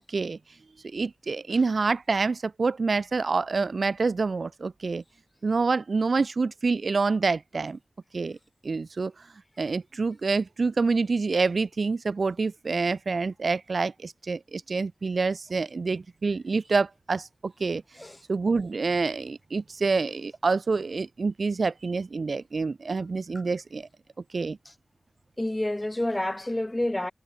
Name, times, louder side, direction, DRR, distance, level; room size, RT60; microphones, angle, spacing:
voice 1, 0.1-0.4 0.9-5.0 5.4-7.8 8.1-8.4 8.6-9.1 9.6-17.8 18.3-23.9 24.3-24.6, right 4 dB, 75° right, 1.4 m, -27 dB
voice 2, 25.4-27.1, left 1 dB, 25° left, 6.9 m, -28 dB
cardioid pair, 45°, 0 cm